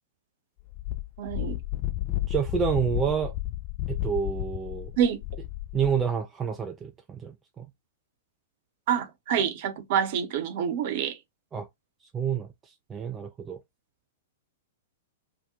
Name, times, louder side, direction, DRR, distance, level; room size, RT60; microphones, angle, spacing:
Wind, 0.7-6.0, left 16 dB, 35° left, 0.5 m, -32 dB
voice 1, 1.2-1.6 5.0-5.2 8.9-11.2, right 8 dB, 50° right, 0.7 m, -27 dB
voice 2, 2.3-3.3 3.9-4.9 5.7-7.7 11.5-11.7 12.1-13.6, right 7 dB, 20° right, 0.3 m, -29 dB
2.8 x 2.2 x 3.7 m
figure-of-eight pair, 105°, 0 cm